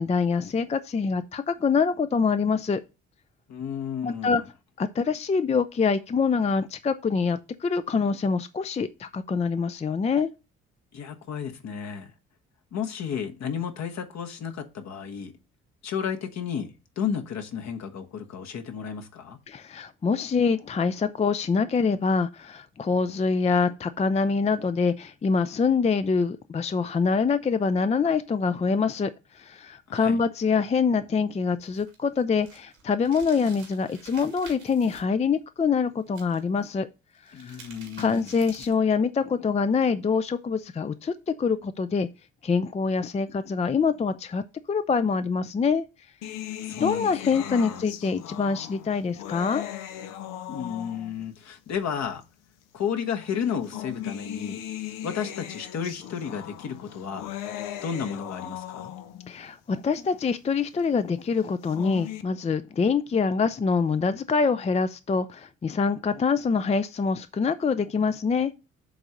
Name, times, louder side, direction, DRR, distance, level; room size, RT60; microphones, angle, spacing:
voice 1, 0.0-2.8 4.0-4.4 4.8-10.3 19.5-36.9 37.4-37.6 38.0-42.1 42.4-44.4 44.7-45.8 46.7-49.6 59.3-68.5, left 5 dB, 20° left, 0.5 m, -25 dB
voice 2, 3.5-4.4 10.9-12.1 12.7-15.3 15.8-19.4 29.9-30.2 37.3-38.3 46.6-47.8 50.5-52.2 52.7-54.6 55.0-57.3 57.8-58.9, left 7 dB, 55° left, 1.3 m, -33 dB
sound 1, 31.6-35.0 36.1-36.6 37.1-38.9, right 5 dB, 90° right, 2.1 m, -49 dB
sound 2, 46.2-51.3 52.2-52.3 53.4-59.3 61.5-62.2, left 11 dB, 70° left, 0.7 m, -38 dB
7.7 x 3.7 x 6.5 m
hypercardioid pair, 50°, 33 cm